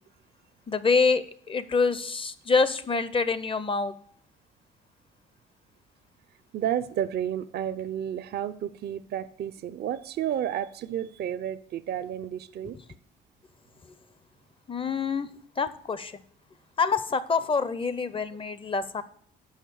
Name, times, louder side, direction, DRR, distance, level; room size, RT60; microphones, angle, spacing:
voice 1, 0.7-3.9 14.7-16.2 16.8-19.0, left 4 dB, 25° left, 14 dB, 0.5 m, -26 dB
voice 2, 6.5-12.8, right 10 dB, 55° right, 14 dB, 0.5 m, -31 dB
6.4 x 5.4 x 6.9 m, 0.62 s
cardioid pair, 90°, 20 cm